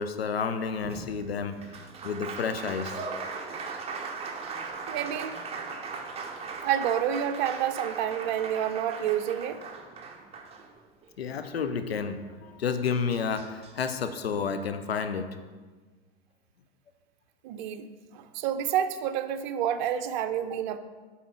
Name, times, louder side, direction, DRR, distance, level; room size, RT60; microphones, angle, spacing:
voice 1, 0.0-3.0 11.2-15.3, left 6 dB, 80° left, 9 dB, 0.5 m, -31 dB
Applause, 0.8-11.1 12.5-12.6 12.8-13.9, right 4 dB, 20° right, 0.9 m, -39 dB
voice 2, 4.9-5.4 6.6-9.6 17.4-20.8, right 9 dB, 50° right, 9 dB, 0.6 m, -29 dB
7.1 x 4.4 x 5.9 m, 1.4 s
figure-of-eight pair, 90°, 30 cm